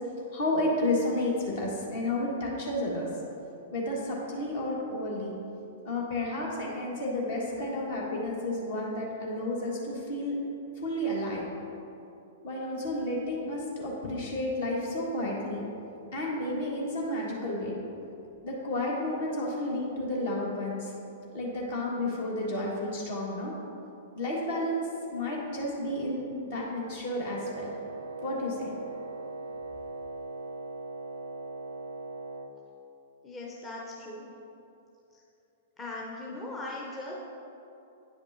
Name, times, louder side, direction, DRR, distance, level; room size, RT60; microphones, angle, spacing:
voice 1, 0.3-3.1 3.7-5.3 5.8-10.3 10.8-11.4 12.4-15.6 16.1-17.8 18.4-20.9 21.3-23.5 24.1-24.8 25.1-27.7 28.2-28.7, left 1 dB, 55° left, -3 dB, 1.5 m, -31 dB
Wind instrument woodwind instrument, 27.2-32.5, right 3 dB, 60° right, 0.4 m, -39 dB
voice 2, 33.2-34.3 35.8-37.1, left 2 dB, 20° left, -4 dB, 0.7 m, -39 dB
9.5 x 5.3 x 2.7 m, 2.8 s
figure-of-eight pair, 105°, 0 cm